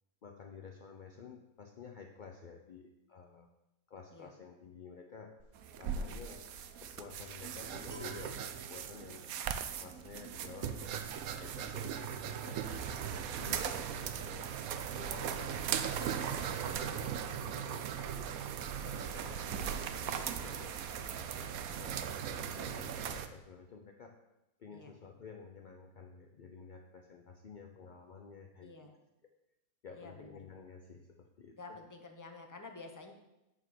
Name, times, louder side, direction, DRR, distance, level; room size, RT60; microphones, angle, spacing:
voice 1, 0.2-3.5 3.9-5.4 5.8-6.5 6.8-9.3 9.8-14.5 14.9-18.3 18.8-20.8 21.8-24.2 24.6-28.7 29.8-31.8, left 5 dB, 55° left, 4 dB, 0.5 m, -52 dB
sound 1, 5.4-5.7 5.9-14.5 14.8-15.0 15.3-16.1 16.4-16.7, left 2 dB, 35° right, 2.5 m, -57 dB
sound 2, 5.5-23.3, right 8 dB, 75° right, 1.1 m, -38 dB
voice 2, 10.8-11.1 14.0-14.3 19.1-19.3 24.7-24.9 28.6-28.9 29.9-30.4 31.6-33.1, left 3 dB, 15° left, 4 dB, 0.8 m, -51 dB
9.1 x 4.5 x 7.5 m, 0.94 s
omnidirectional pair, 1.6 m